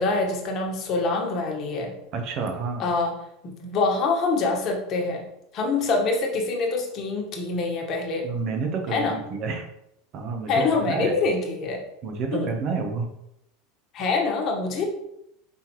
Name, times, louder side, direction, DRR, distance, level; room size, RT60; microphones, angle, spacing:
voice 1, 0.0-1.9 2.8-3.1 3.4-5.2 5.5-8.3 8.9-9.1 10.5-11.8 12.3-12.5 13.9-14.8, left 3 dB, 45° left, 0 dB, 1.2 m, -25 dB
voice 2, 2.1-2.8 8.2-9.7 10.1-11.1 12.0-13.1, right 4 dB, 50° right, 4 dB, 0.8 m, -29 dB
5.3 x 3.0 x 3.0 m, 0.79 s
hypercardioid pair, 85°, 0 cm